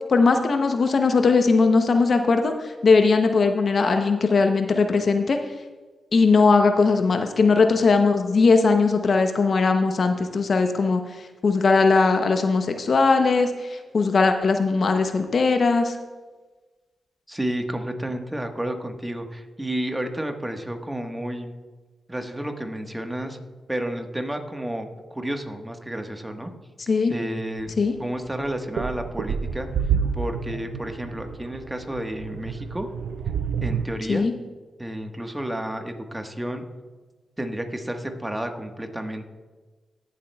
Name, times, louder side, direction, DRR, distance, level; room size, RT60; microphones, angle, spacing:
voice 1, 0.1-5.4 6.1-11.0 11.4-16.0 26.9-27.1 27.8-27.9 34.1-34.3, left 4 dB, 60° left, 6 dB, 0.7 m, -19 dB
voice 2, 17.3-21.5 22.1-23.4 23.7-26.5 27.1-27.7 28.0-29.7 30.1-32.9 33.6-34.3 34.8-36.6 37.4-39.2, right 1 dB, 15° right, 5 dB, 1.3 m, -31 dB
sound 1, 27.6-27.7 28.3-33.9, right 7 dB, 85° right, 0.4 m, -29 dB
17.5 x 7.3 x 2.3 m, 1.3 s
supercardioid pair, 45°, 0 cm